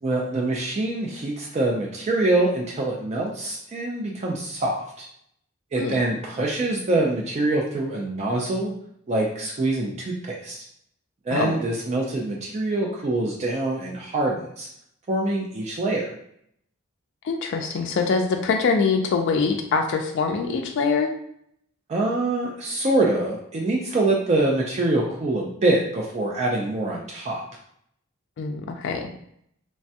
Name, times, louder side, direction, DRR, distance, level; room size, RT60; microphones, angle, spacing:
voice 1, 0.0-5.1 5.7-8.7 9.1-10.6 11.3-14.7 15.1-16.1 21.9-27.4, right 2 dB, 35° right, -1 dB, 0.4 m, -25 dB
voice 2, 17.2-21.1 28.4-29.1, left 4 dB, 60° left, 3 dB, 0.3 m, -24 dB
3.2 x 2.2 x 2.7 m, 0.70 s
head